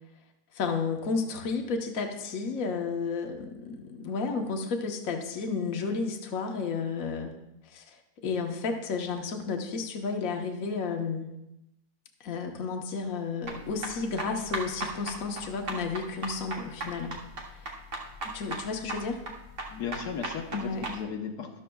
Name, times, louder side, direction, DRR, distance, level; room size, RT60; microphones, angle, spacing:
voice 1, 0.5-7.3 7.6-8.0 8.2-11.3 12.2-17.1 17.6-17.7 18.3-19.2 20.5-20.9, left 4 dB, 60° left, 2 dB, 1.4 m, -32 dB
sound 1, 13.4-21.0, right 3 dB, 50° right, 1.6 m, -37 dB
voice 2, 19.7-21.6, left 7 dB, 80° left, 2 dB, 1.6 m, -36 dB
13.0 x 12.0 x 2.3 m, 0.88 s
omnidirectional pair, 1.7 m